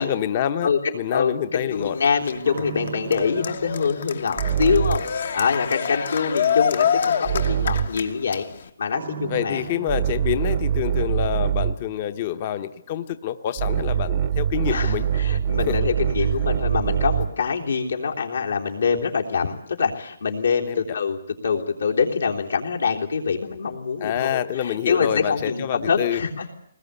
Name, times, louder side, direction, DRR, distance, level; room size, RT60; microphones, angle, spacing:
voice 1, 0.0-2.0 9.2-15.1 15.7-15.8 20.6-20.8 24.0-26.2, left 10 dB, 35° left, 11 dB, 0.9 m, -27 dB
voice 2, 0.6-8.5 8.8-9.7 14.7-21.2 21.4-26.5, left 5 dB, 85° left, 0 dB, 3.6 m, -25 dB
Cheering, 1.7-8.7, left 7 dB, 65° left, 1.3 m, -27 dB
sound 1, 2.5-5.2 7.2-8.1 8.9-11.9 13.6-17.4, right 9 dB, 35° right, 0.8 m, -25 dB
21.5 x 20.0 x 8.4 m, 0.72 s
hypercardioid pair, 165°, 0 cm